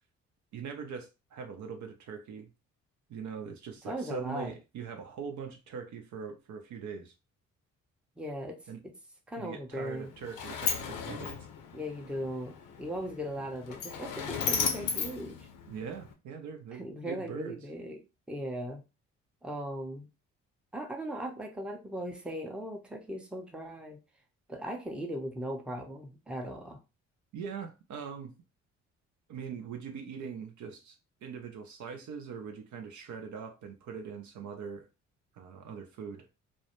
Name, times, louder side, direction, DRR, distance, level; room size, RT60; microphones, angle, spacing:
voice 1, 0.5-2.5 3.1-7.1 8.7-8.8 9.4-11.5 15.7-17.6 27.3-28.3 29.3-34.9 35.3-36.3, right 6 dB, 55° right, 0.6 m, -42 dB
voice 2, 3.8-4.5 8.2-8.6 8.8-8.9 9.3-10.1 11.7-15.5 16.7-18.0 18.3-18.8 19.4-20.1 20.7-24.0 24.5-26.8, equal, 5° right, 0.6 m, -38 dB
Sliding door, 9.7-16.1, left 6 dB, 65° left, 0.7 m, -36 dB
2.3 x 2.1 x 2.9 m
hypercardioid pair, 45°, 36 cm